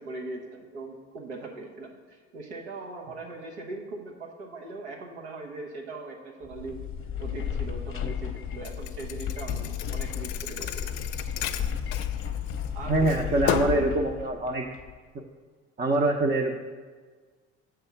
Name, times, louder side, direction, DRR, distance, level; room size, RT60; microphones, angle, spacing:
voice 1, 0.0-6.8 7.2-10.9 12.7-14.1, right 3 dB, 90° right, 1 dB, 1.0 m, -40 dB
sound 1, 6.4-15.0, left 8 dB, 40° left, 0.7 m, -33 dB
Thump thud, 8.6-12.7 13.1-13.9, left 10 dB, 75° left, 0.5 m, -33 dB
voice 2, 12.9-14.6 15.8-16.5, right 2 dB, 30° right, 1 dB, 0.7 m, -24 dB
6.8 x 3.6 x 5.7 m, 1.5 s
hypercardioid pair, 60°, 33 cm